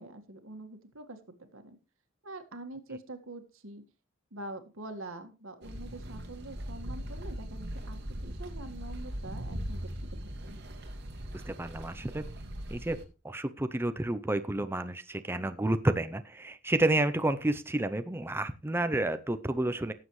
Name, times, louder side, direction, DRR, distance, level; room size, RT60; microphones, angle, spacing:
voice 1, 0.0-1.8 2.2-3.8 4.3-9.9 10.2-10.5, right 2 dB, 85° right, 7 dB, 1.8 m, -45 dB
sound 1, 5.6-13.0, equal, 55° right, 2.5 m, -40 dB
voice 2, 11.5-12.2 12.7-13.0 13.2-19.9, right 1 dB, 10° right, 10 dB, 0.6 m, -30 dB
18.0 x 7.5 x 3.1 m, 0.31 s
head